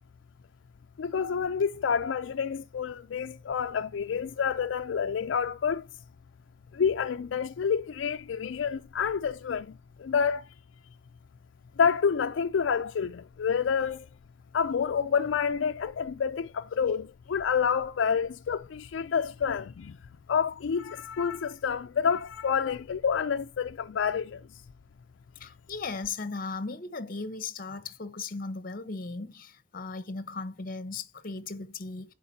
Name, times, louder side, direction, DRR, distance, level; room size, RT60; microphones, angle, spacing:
voice 1, 1.0-5.8 6.7-10.5 11.8-14.1 14.5-20.0 20.3-24.4, left 6 dB, 80° left, 0.4 m, -28 dB
voice 2, 25.4-32.1, left 4 dB, 50° left, 0.9 m, -37 dB
10.5 x 4.6 x 2.7 m
head